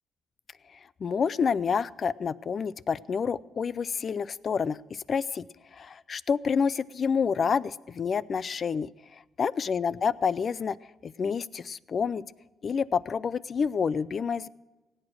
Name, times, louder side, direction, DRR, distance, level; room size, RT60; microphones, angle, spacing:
voice 1, 1.0-5.4 5.7-8.9 9.4-10.8 11.0-12.2 12.6-14.5, left 6 dB, 45° left, 20 dB, 0.4 m, -28 dB
17.0 x 8.9 x 6.2 m, 1.1 s
cardioid pair, 90°, 0 cm